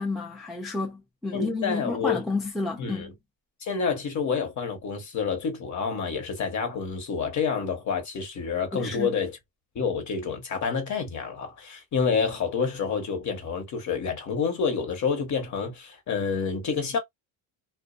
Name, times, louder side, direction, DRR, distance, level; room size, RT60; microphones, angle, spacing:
voice 1, 0.0-3.1 8.7-9.1, left 3 dB, ahead, 0.5 m, -31 dB
voice 2, 1.3-2.2 2.8-3.1 3.6-9.4 9.7-17.0, left 5 dB, 40° left, 1.1 m, -28 dB
2.4 x 2.2 x 2.4 m
cardioid pair, 120°, 43 cm